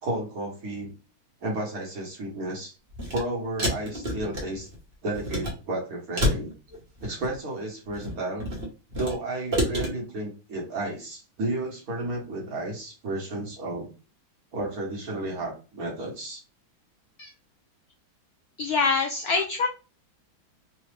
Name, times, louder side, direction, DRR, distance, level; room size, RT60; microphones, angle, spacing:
voice 1, 0.0-0.9 1.4-2.7 3.1-4.7 5.0-6.5 7.0-8.5 9.0-13.9 14.5-16.4, right 2 dB, 55° right, -1 dB, 1.5 m, -32 dB
sound 1, 2.9-3.2 3.6-4.8 5.1-5.5 6.2-7.3 7.9-9.1 9.5-9.9, equal, 35° right, 1.1 m, -28 dB
voice 2, 18.6-19.7, left 4 dB, 80° left, 4 dB, 0.8 m, -24 dB
4.0 x 2.4 x 3.2 m, 0.33 s
omnidirectional pair, 2.1 m